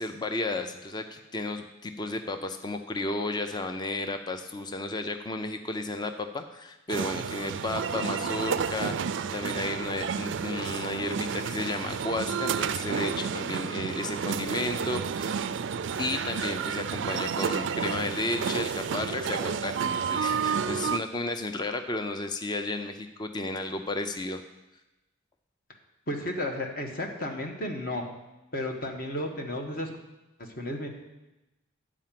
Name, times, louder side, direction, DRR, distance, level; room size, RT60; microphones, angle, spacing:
voice 1, 0.0-9.0 9.3-15.4 16.0-24.4, left 2 dB, 20° left, 7 dB, 0.5 m, -33 dB
sound 1, 6.9-21.0, right 6 dB, 60° right, 0.4 m, -31 dB
voice 2, 26.1-28.0 28.5-29.9 30.6-30.9, left 1 dB, 45° left, 2 dB, 1.4 m, -33 dB
9.8 x 5.0 x 7.5 m, 0.98 s
head